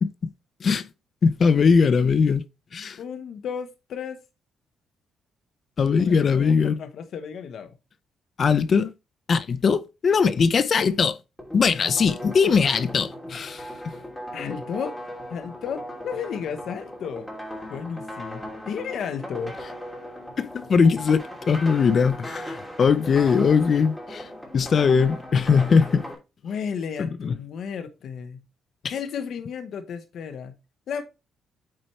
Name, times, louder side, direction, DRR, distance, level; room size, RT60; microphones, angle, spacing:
voice 1, 1.2-2.4 2.7-3.0 5.8-6.8 8.4-8.9 9.3-11.2 11.5-13.7 20.4-24.3 24.5-26.1 27.0-27.3 28.8-28.9, left 5 dB, 45° left, 0.6 m, -20 dB
voice 2, 3.0-4.2 6.0-7.7 14.3-15.0 15.3-17.3 17.7-19.6 26.4-28.4 28.9-30.6 30.9-31.0, left 7 dB, 65° left, 0.9 m, -33 dB
sound 1, 11.4-26.1, equal, 5° left, 2.9 m, -38 dB
8.7 x 4.4 x 3.2 m
cardioid pair, 90°, 0 cm